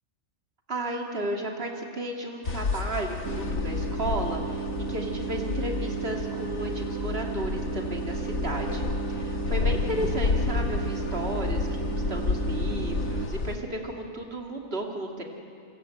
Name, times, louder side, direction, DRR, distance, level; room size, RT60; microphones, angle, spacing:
voice 1, 0.7-15.2, right 1 dB, 45° right, 1 dB, 2.9 m, -34 dB
sound 1, 2.4-13.6, left 4 dB, 80° left, 1.8 m, -30 dB
sound 2, 3.3-13.3, right 7 dB, 85° right, 1.5 m, -34 dB
28.5 x 25.0 x 8.0 m, 2.3 s
omnidirectional pair, 1.4 m